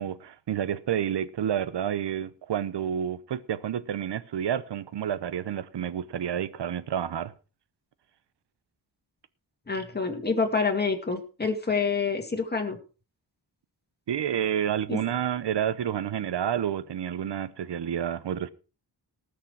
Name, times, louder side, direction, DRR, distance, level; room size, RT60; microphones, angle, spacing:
voice 1, 0.0-7.3 14.1-18.5, right 9 dB, 85° right, 0.9 m, -29 dB
voice 2, 9.7-12.8 14.9-15.0, left 4 dB, 25° left, 2.4 m, -27 dB
19.0 x 6.6 x 4.7 m
wide cardioid pair, 125°, 41 cm